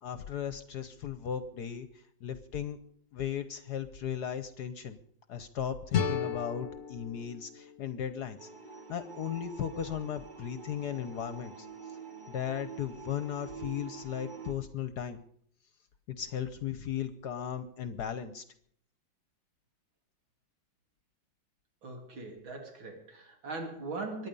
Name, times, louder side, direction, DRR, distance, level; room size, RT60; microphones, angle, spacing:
voice 1, 0.0-1.9 2.2-2.8 3.1-5.0 5.3-8.5 8.9-11.7 12.3-15.2 16.2-18.4, left 9 dB, 60° left, 11 dB, 1.3 m, -36 dB
sound 1, 5.9-8.8, left 7 dB, 45° left, 1.3 m, -35 dB
sound 2, 8.4-14.5, right 6 dB, 25° right, 1.3 m, -46 dB
voice 2, 21.8-24.3, right 3 dB, 85° right, 2 dB, 3.9 m, -40 dB
24.5 x 10.0 x 5.4 m, 0.65 s
omnidirectional pair, 2.1 m